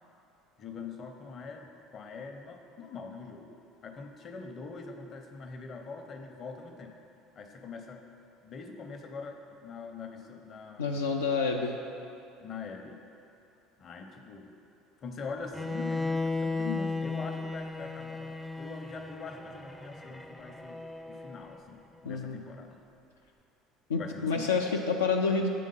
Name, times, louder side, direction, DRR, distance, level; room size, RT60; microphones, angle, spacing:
voice 1, 0.6-3.5 3.8-6.9 7.3-8.0 8.4-11.2 12.4-13.0 13.8-14.5 15.0-20.8 21.1-22.8 23.9-24.6, left 4 dB, 40° left, 4 dB, 0.7 m, -43 dB
voice 2, 10.8-11.8 22.1-22.4 23.9-25.5, left 4 dB, 80° left, 1 dB, 0.3 m, -28 dB
Bowed string instrument, 15.5-21.6, left 3 dB, 5° left, 0.4 m, -35 dB
8.4 x 3.7 x 5.4 m, 2.7 s
figure-of-eight pair, 65°, 0 cm